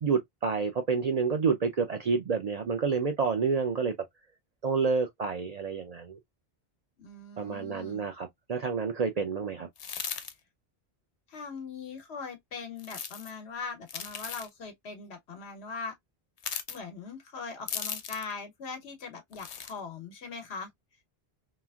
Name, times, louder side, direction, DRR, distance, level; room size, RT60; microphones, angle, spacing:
voice 1, 0.0-3.9 4.6-6.2 7.4-9.7, right 5 dB, 50° right, 0.5 m, -29 dB
voice 2, 7.0-8.0 11.3-15.9 16.7-20.7, left 4 dB, 90° left, 1.2 m, -41 dB
sound 1, 9.8-10.3 12.8-13.3 13.9-14.5 16.4-16.8 17.7-18.3 19.3-19.7, left 7 dB, 55° left, 0.4 m, -37 dB
3.1 x 2.4 x 2.2 m
omnidirectional pair, 1.0 m